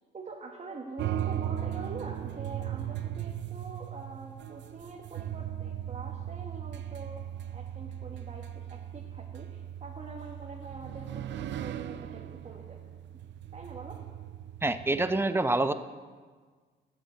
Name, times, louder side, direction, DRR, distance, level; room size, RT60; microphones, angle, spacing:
voice 1, 0.1-12.8 13.5-14.0, right 3 dB, 35° right, 0 dB, 1.4 m, -45 dB
sound 1, 1.0-15.2, right 11 dB, 65° right, 0.5 m, -38 dB
voice 2, 14.6-15.7, right 2 dB, 10° right, 11 dB, 0.6 m, -26 dB
12.5 x 7.4 x 6.7 m, 1.5 s
cardioid pair, 90°, 20 cm